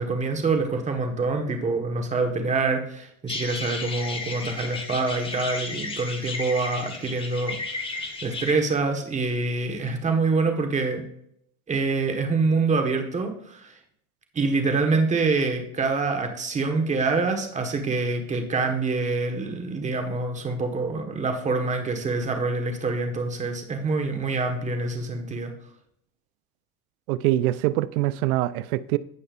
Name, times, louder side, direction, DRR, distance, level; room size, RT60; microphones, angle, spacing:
voice 1, 0.0-7.6 7.9-11.0 11.7-13.7 14.3-25.5, right 3 dB, 15° right, 1.4 m, -26 dB
sound 1, 3.3-8.5, left 3 dB, 15° left, 1.2 m, -33 dB
voice 2, 27.1-29.0, right 15 dB, 85° right, 0.6 m, -24 dB
16.5 x 5.5 x 2.5 m
supercardioid pair, 140°, 42 cm